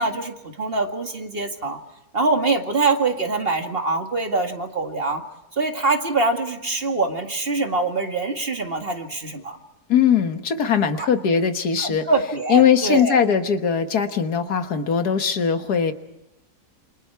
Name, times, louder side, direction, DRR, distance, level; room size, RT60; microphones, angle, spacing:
voice 1, 0.0-1.8 2.1-5.2 5.6-9.6 11.0-11.1 11.8-13.2, right 3 dB, 35° right, 4 dB, 2.1 m, -24 dB
voice 2, 9.9-12.0 12.5-15.9, left 7 dB, 75° left, 8 dB, 1.9 m, -20 dB
28.5 x 26.5 x 4.7 m, 0.90 s
omnidirectional pair, 1.7 m